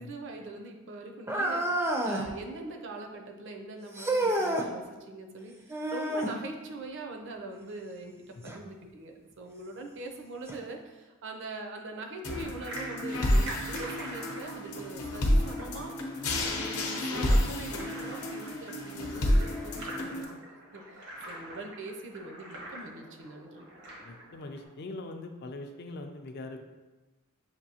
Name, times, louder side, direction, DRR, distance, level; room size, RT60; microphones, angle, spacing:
voice 1, 0.0-23.7, right 2 dB, 60° right, 3 dB, 0.5 m, -43 dB
sound 1, 1.3-2.3 3.9-4.7 5.7-6.4 8.5-8.6 9.4-9.5 10.5-10.6, right 1 dB, 10° right, 0.4 m, -29 dB
sound 2, 12.2-20.2, left 1 dB, 80° left, 0.7 m, -30 dB
sound 3, 12.3-24.6, right 1 dB, 90° right, 1.2 m, -45 dB
voice 2, 24.0-26.6, left 2 dB, 50° left, 5 dB, 0.4 m, -42 dB
6.6 x 2.7 x 2.8 m, 1.2 s
head